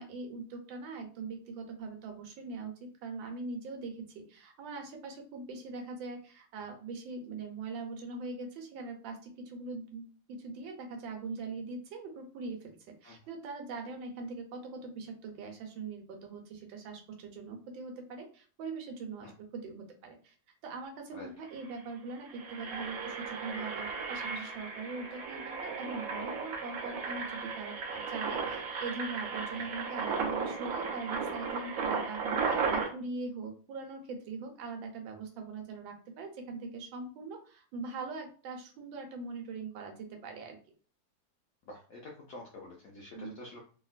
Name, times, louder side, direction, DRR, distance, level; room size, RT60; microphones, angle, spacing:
voice 1, 0.0-20.3 20.6-40.6 43.1-43.3, right 4 dB, 85° right, 4 dB, 1.4 m, -42 dB
Engine, 21.1-21.2 21.5-21.7 22.2-32.9, right 5 dB, 65° right, 0.8 m, -35 dB
voice 2, 41.7-43.6, left 2 dB, 75° left, -2 dB, 0.8 m, -47 dB
2.9 x 2.7 x 2.4 m, 0.40 s
omnidirectional pair, 2.0 m